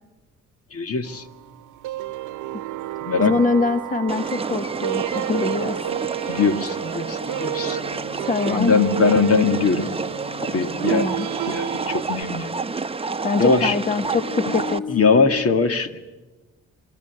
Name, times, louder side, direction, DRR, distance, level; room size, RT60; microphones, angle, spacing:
voice 1, 0.7-1.3 3.0-3.4 5.9-6.0 6.3-7.8 8.5-10.0 10.4-11.1 11.5-12.5 13.4-13.8 14.9-16.0, left 4 dB, 50° left, 9 dB, 2.1 m, -21 dB
sound 1, 1.0-12.2, right 13 dB, 80° right, 0.9 m, -31 dB
voice 2, 2.9-5.8 8.2-8.7 10.9-11.3 13.2-15.0, left 4 dB, 25° left, 10 dB, 1.1 m, -24 dB
sound 2, 4.1-14.8, right 4 dB, 20° right, 1.0 m, -29 dB
sound 3, 7.2-12.3 14.0-15.4, left 4 dB, 75° left, 2.2 m, -37 dB
27.5 x 24.0 x 8.2 m, 1.2 s
cardioid pair, 90°, 30 cm